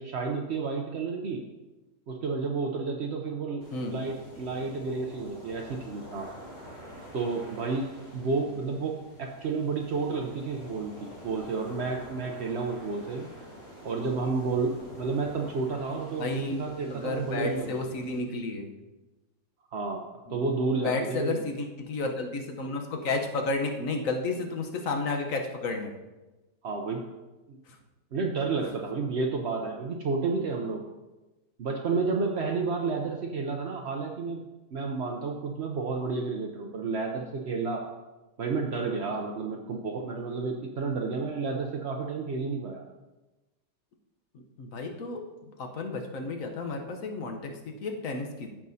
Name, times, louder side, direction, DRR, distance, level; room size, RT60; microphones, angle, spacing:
voice 1, 0.0-1.4 2.1-6.3 7.1-7.8 8.1-13.3 13.8-17.7 19.7-21.4 26.6-27.0 27.5-27.6 28.1-30.8 31.6-34.4 34.7-37.8 38.4-42.8, right 4 dB, 65° right, 1 dB, 0.6 m, -31 dB
sound 1, 3.6-18.2, equal, 80° left, 3.8 m, -48 dB
voice 2, 16.2-16.6 16.9-18.7 20.3-20.4 20.8-25.9 44.3-45.2 45.6-48.5, left 3 dB, 55° left, 3 dB, 1.2 m, -32 dB
14.0 x 6.1 x 2.7 m, 1.1 s
omnidirectional pair, 2.0 m